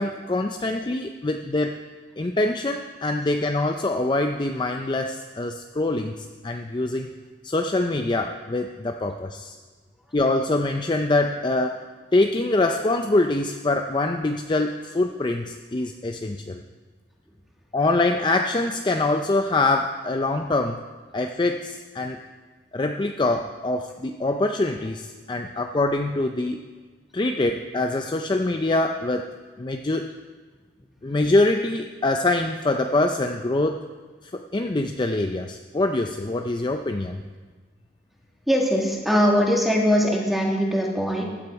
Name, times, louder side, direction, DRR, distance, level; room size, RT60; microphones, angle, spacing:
voice 1, 0.0-1.8 2.2-7.1 7.4-9.5 10.1-11.8 12.1-16.6 17.7-20.9 21.1-22.2 22.7-26.6 27.1-29.3 29.6-30.1 31.0-33.8 34.3-37.2, left 2 dB, 25° left, 4 dB, 0.5 m, -24 dB
voice 2, 38.5-41.2, equal, ahead, -2 dB, 2.0 m, -21 dB
15.5 x 9.8 x 4.7 m, 1.4 s
head